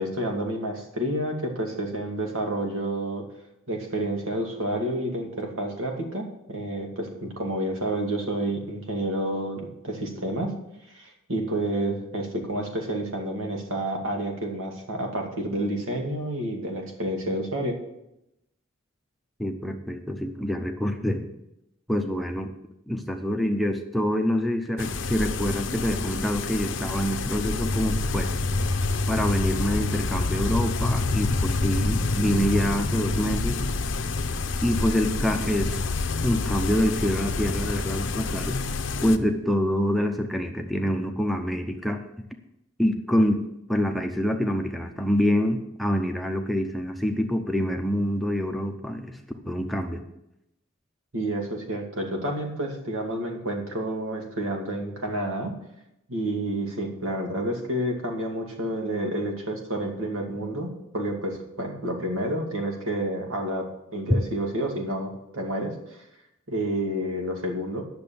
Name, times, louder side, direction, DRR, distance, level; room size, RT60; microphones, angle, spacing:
voice 1, 0.0-3.2 3.7-10.5 10.9-17.8 51.1-55.5 56.1-66.0 66.5-67.8, right 1 dB, 80° right, 1 dB, 2.4 m, -29 dB
voice 2, 19.4-21.3 21.9-22.5 22.9-28.3 29.1-33.6 34.6-35.8 36.2-38.6 39.0-42.0 42.8-43.4 43.7-49.2 49.5-50.0, equal, ahead, 5 dB, 0.7 m, -26 dB
sound 1, 24.8-39.2, left 3 dB, 65° left, 0.8 m, -27 dB
10.5 x 6.8 x 7.0 m, 0.85 s
head